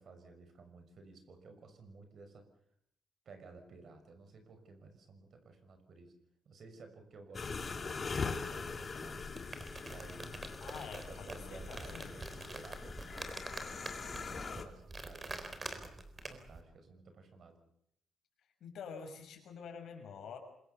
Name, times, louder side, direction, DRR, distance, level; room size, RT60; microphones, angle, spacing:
voice 1, 0.0-2.4 3.2-6.1 6.4-9.3 9.8-10.4 11.0-15.9 16.3-17.6, right 4 dB, 55° right, 7 dB, 6.1 m, -55 dB
sound 1, 7.3-14.6, left 4 dB, 35° left, 2.8 m, -42 dB
sound 2, 9.1-16.6, right 2 dB, 25° right, 3.9 m, -46 dB
voice 2, 10.6-12.2 18.6-20.4, left 6 dB, 70° left, 4 dB, 6.5 m, -47 dB
25.5 x 22.5 x 7.0 m, 0.73 s
cardioid pair, 90°, 0 cm